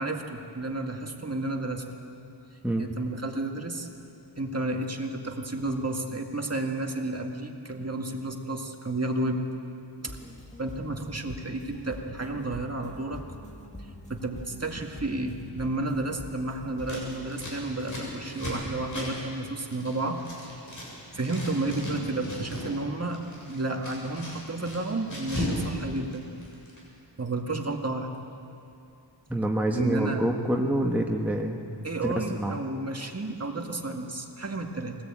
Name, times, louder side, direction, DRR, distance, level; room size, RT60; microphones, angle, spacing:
voice 1, 0.0-2.0 2.8-3.9 4.4-9.5 10.0-10.2 10.6-13.2 13.8-20.6 21.1-26.3 27.2-28.2 29.8-30.3 31.8-35.0, right 2 dB, 30° right, 2 dB, 2.0 m, -32 dB
sound 1, 10.0-17.2, left 1 dB, 15° left, 2.5 m, -45 dB
Scissors, 16.8-20.9 21.1-22.7 23.0-25.6 25.9-26.8, left 1 dB, 40° left, 7.4 m, -37 dB
voice 2, 29.3-31.6 32.0-32.6, right 1 dB, 5° right, 1 dB, 1.3 m, -27 dB
23.5 x 18.5 x 8.9 m, 2.7 s
wide cardioid pair, 120°, 46 cm